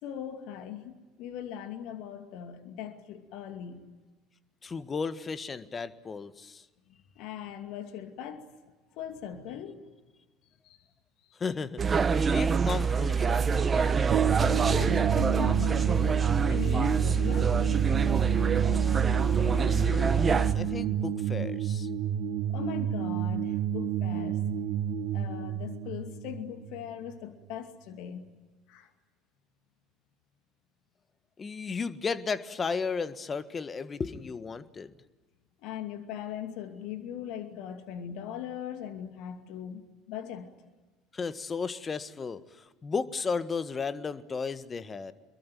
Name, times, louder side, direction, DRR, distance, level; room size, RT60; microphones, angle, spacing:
voice 1, 0.0-3.9 6.9-8.5 9.0-9.8 10.6-10.8 14.5-17.7 22.5-24.4 25.1-28.2 28.7-28.9 35.6-40.5, left 9 dB, 60° left, 7 dB, 2.4 m, -40 dB
voice 2, 4.6-6.6 11.4-11.8 12.3-14.4 19.4-21.9 31.4-34.9 41.1-45.1, left 5 dB, 30° left, 13 dB, 1.5 m, -34 dB
sound 1, 11.8-20.5, right 6 dB, 30° right, 1.7 m, -25 dB
sound 2, 14.1-27.2, right 9 dB, 55° right, 1.5 m, -30 dB
25.5 x 22.5 x 9.4 m, 1.2 s
figure-of-eight pair, 65°, 0 cm